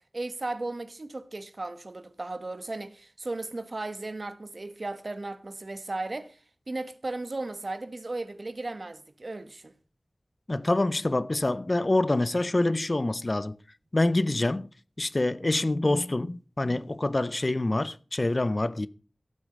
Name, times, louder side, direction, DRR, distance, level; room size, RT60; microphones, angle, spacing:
voice 1, 0.1-6.4 6.7-9.7 15.4-15.7, right 2 dB, 50° right, 1.3 m, -36 dB
voice 2, 10.5-13.6 13.9-14.7 15.0-18.9, left 2 dB, 40° left, 0.6 m, -26 dB
15.0 x 8.5 x 5.3 m
wide cardioid pair, 70°, 0 cm